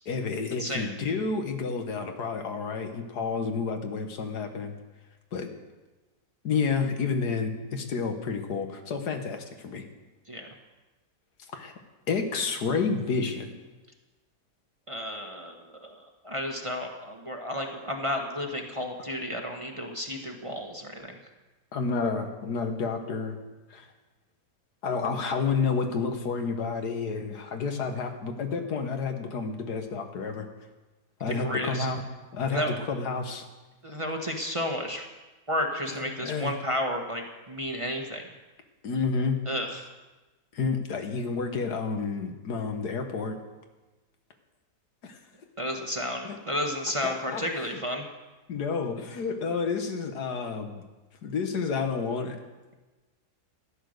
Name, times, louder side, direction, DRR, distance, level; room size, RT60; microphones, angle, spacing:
voice 1, 0.1-4.7 5.3-5.5 6.4-9.8 11.5-11.7 12.1-13.6 21.7-23.4 23.7-23.9 24.8-30.5 31.2-32.0 32.3-33.4 35.9-36.5 38.8-39.4 40.5-43.4 45.0-45.2 46.2-46.4 47.0-47.8 48.5-50.8 51.2-52.4, left 5 dB, 85° left, 6 dB, 1.8 m, -30 dB
voice 2, 14.9-21.2 31.3-31.9 32.5-32.8 33.8-35.1 35.5-38.2 39.5-39.9 45.6-48.1, equal, 25° right, 2 dB, 1.0 m, -32 dB
13.5 x 10.5 x 6.5 m, 1.2 s
omnidirectional pair, 1.7 m